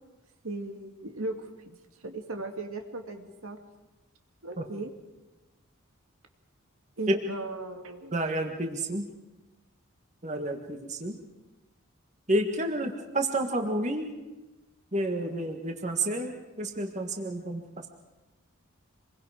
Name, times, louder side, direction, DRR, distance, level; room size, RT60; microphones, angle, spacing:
voice 1, 0.4-1.7 2.0-3.6 4.4-4.9 7.0-8.2, right 2 dB, 80° right, 4 dB, 2.2 m, -37 dB
voice 2, 8.1-9.1 10.2-11.2 12.3-14.1 14.9-16.3 16.6-17.6, right 1 dB, 35° right, 4 dB, 1.6 m, -29 dB
27.0 x 22.0 x 5.0 m, 1.1 s
head